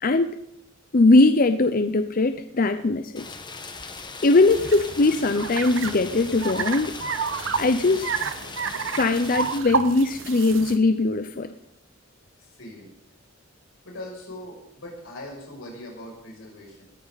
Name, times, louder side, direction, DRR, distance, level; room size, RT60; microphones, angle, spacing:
voice 1, 0.0-0.3 0.9-3.3 4.2-7.0 7.6-8.3 9.0-11.5, left 2 dB, 45° left, 10 dB, 0.6 m, -20 dB
Rain, 3.2-9.6, left 4 dB, 20° left, 1.3 m, -39 dB
sound 1, 4.5-10.8, right 5 dB, 70° right, 1.1 m, -30 dB
voice 2, 12.4-12.9 13.8-16.9, left 1 dB, 90° left, -2 dB, 6.9 m, -40 dB
19.5 x 15.0 x 4.1 m, 0.75 s
head